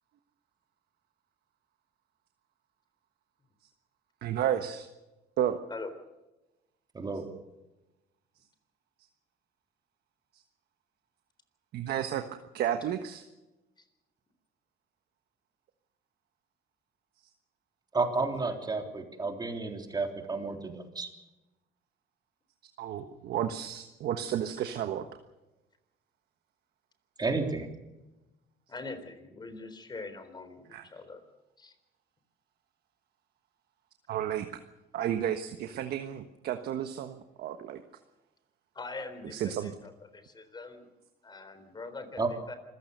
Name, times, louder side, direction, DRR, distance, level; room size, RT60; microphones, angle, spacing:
voice 1, 4.2-4.9 5.4-5.6 11.7-12.2 12.5-13.2 22.8-25.0 30.7-30.8 34.1-34.5 34.9-37.8 39.3-39.7, right 10 dB, 70° right, 7 dB, 1.3 m, -32 dB
voice 2, 6.9-7.3 17.9-21.1 27.2-27.7 42.2-42.3, right 3 dB, 25° right, 4 dB, 3.6 m, -31 dB
voice 3, 28.7-31.2 31.6-31.7 38.7-40.9 41.2-42.5, left 3 dB, 25° left, 10 dB, 3.8 m, -43 dB
26.5 x 15.5 x 6.7 m, 1.0 s
cardioid pair, 110°, 17 cm